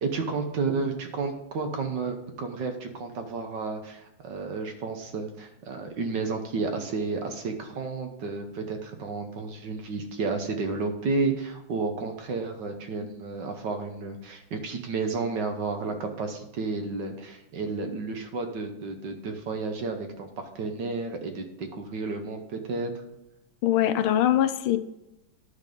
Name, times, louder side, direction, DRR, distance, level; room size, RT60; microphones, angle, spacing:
voice 1, 0.0-22.9, right 4 dB, 60° right, 5 dB, 1.5 m, -31 dB
voice 2, 23.6-24.8, left 12 dB, 80° left, 11 dB, 1.5 m, -22 dB
12.0 x 4.1 x 5.2 m, 0.90 s
omnidirectional pair, 2.3 m